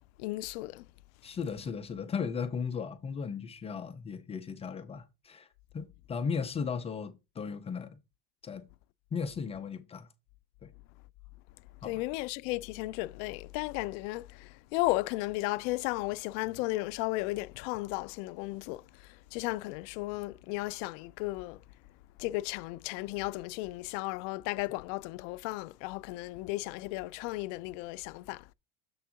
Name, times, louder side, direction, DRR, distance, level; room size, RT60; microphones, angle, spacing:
voice 1, 0.2-0.9 11.8-18.8 19.3-21.6 22.2-28.5, left 20 dB, 85° left, 0.5 m, -34 dB
voice 2, 1.2-5.5 5.7-8.0 8.4-8.7 9.1-10.1 10.6-10.7 11.8-12.0, left 6 dB, 15° left, 0.4 m, -36 dB
7.0 x 3.6 x 5.6 m
cardioid pair, 175°, 37 cm